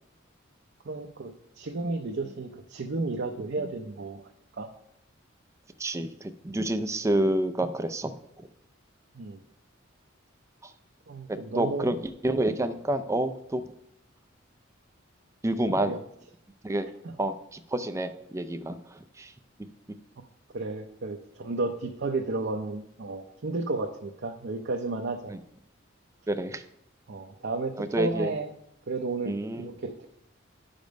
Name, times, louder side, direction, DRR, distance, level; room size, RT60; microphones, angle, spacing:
voice 1, 0.8-4.2 4.5-4.7 9.1-9.4 11.1-11.9 15.8-16.0 20.5-25.3 27.1-28.5 28.9-30.0, right 3 dB, 60° right, 3 dB, 0.6 m, -33 dB
voice 2, 5.8-8.1 10.6-10.7 11.3-13.7 15.4-16.0 16.6-16.9 17.2-19.3 25.3-25.4 26.3-26.6 27.8-28.3 29.3-29.7, right 1 dB, 15° right, 9 dB, 0.4 m, -29 dB
10.5 x 5.2 x 5.2 m, 0.76 s
head